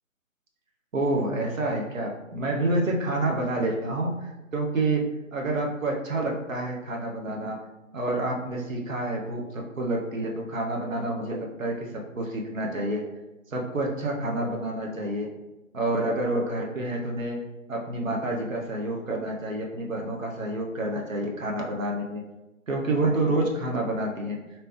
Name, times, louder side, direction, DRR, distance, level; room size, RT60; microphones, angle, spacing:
voice 1, 0.9-7.6 7.9-13.0 13.5-15.3 15.7-17.4 17.7-22.2 22.7-24.4, right 2 dB, 75° right, 0 dB, 0.9 m, -28 dB
3.2 x 2.9 x 3.0 m, 1.0 s
figure-of-eight pair, 145°, 40 cm